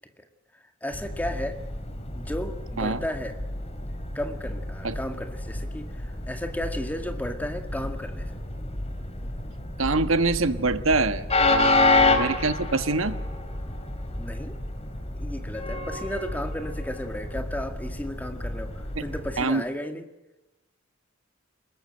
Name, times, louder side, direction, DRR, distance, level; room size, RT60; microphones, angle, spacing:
voice 1, 0.5-1.6 2.2-3.4 4.1-8.3 14.2-14.6 15.1-20.1, left 1 dB, 10° left, 6 dB, 2.0 m, -34 dB
Train, 0.9-19.5, left 2 dB, 30° left, 2.9 m, -29 dB
voice 2, 9.8-13.2 19.0-19.1 19.4-19.6, right 3 dB, 75° right, 10 dB, 1.4 m, -25 dB
23.5 x 21.0 x 7.9 m, 0.99 s
head